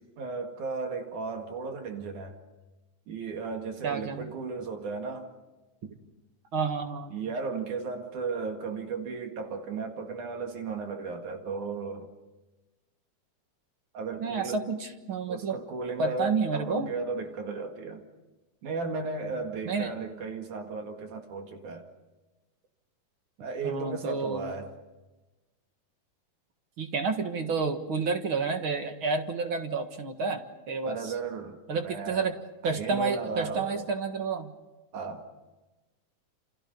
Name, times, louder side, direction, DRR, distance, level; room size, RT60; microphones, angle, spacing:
voice 1, 0.0-2.4 3.1-5.3 7.1-12.1 13.9-14.6 15.3-18.0 18.6-21.9 23.4-24.7 30.9-32.3 32.6-33.9 34.9-35.2, right 4 dB, 75° right, 4 dB, 3.5 m, -35 dB
voice 2, 3.8-4.3 6.5-7.1 14.2-15.6 16.0-16.9 19.7-19.9 23.6-24.5 26.8-30.4 30.7-31.1 31.7-32.3 32.6-34.5, right 4 dB, 45° right, 6 dB, 2.2 m, -30 dB
28.5 x 28.5 x 5.5 m, 1.1 s
omnidirectional pair, 3.5 m